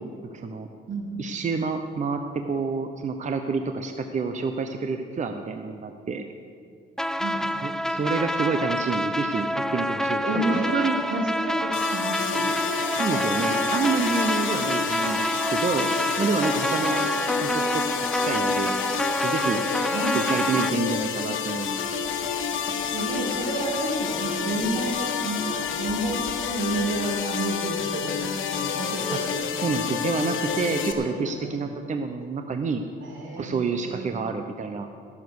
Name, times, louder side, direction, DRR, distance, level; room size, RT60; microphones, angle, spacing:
voice 1, 0.0-0.7 1.2-6.3 7.6-11.0 12.9-17.1 17.4-17.8 18.1-18.8 19.2-19.6 20.1-21.8 29.1-29.3 29.6-32.8 33.4-34.9, right 4 dB, 40° right, 6 dB, 0.8 m, -28 dB
voice 2, 0.9-1.3 7.2-7.5 10.2-12.5 19.9-20.2 22.7-29.9 30.5-31.7 33.0-34.1, right 2 dB, 75° right, -1 dB, 3.0 m, -31 dB
sound 1, 7.0-20.7, equal, 5° left, 0.4 m, -27 dB
sound 2, 11.7-30.9, left 7 dB, 85° left, 1.3 m, -29 dB
Writing, 21.8-27.1, right 1 dB, 20° right, 2.8 m, -49 dB
17.0 x 7.3 x 6.4 m, 2.3 s
cardioid pair, 90°, 20 cm